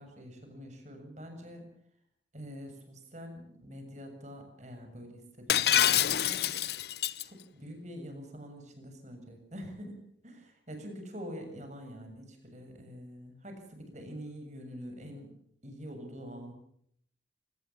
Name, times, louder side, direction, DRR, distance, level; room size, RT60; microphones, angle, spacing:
voice 1, 0.0-1.7 2.3-6.5 7.2-15.3 15.6-16.5, equal, 40° right, 6 dB, 7.1 m, -45 dB
Shatter, 5.5-7.2, left 10 dB, 60° left, 0.9 m, -26 dB
25.5 x 19.5 x 7.2 m, 0.68 s
head